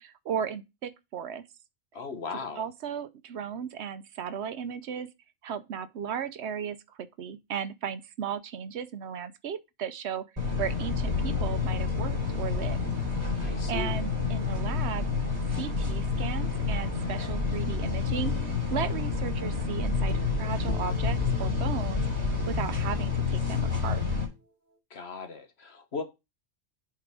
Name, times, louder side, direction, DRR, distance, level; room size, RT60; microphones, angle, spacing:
voice 1, 0.0-1.4 2.6-5.1 5.4-10.2 10.6-12.8 13.4-15.1 15.5-24.0, right 8 dB, 75° right, 1.0 m, -35 dB
voice 2, 1.9-2.6 13.4-14.0 24.9-26.0, left 4 dB, 70° left, 1.4 m, -37 dB
sound 1, 10.4-24.2, left 4 dB, 35° right, 3.3 m, -29 dB
sound 2, 10.6-14.8, left 11 dB, 85° left, 0.9 m, -39 dB
sound 3, 19.7-22.7, left 1 dB, 45° left, 1.5 m, -33 dB
8.2 x 3.8 x 4.8 m
omnidirectional pair, 1.1 m